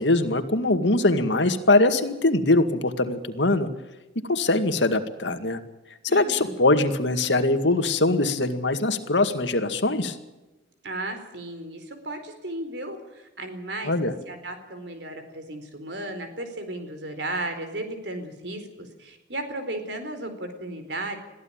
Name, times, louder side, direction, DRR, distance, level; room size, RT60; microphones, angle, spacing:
voice 1, 0.0-3.7 4.3-5.6 6.0-10.2 13.8-14.1, left 2 dB, 80° left, 8 dB, 2.1 m, -22 dB
voice 2, 6.1-6.6 10.8-13.9 14.3-21.2, right 1 dB, 70° right, 7 dB, 4.4 m, -35 dB
22.0 x 15.0 x 8.9 m, 1.0 s
head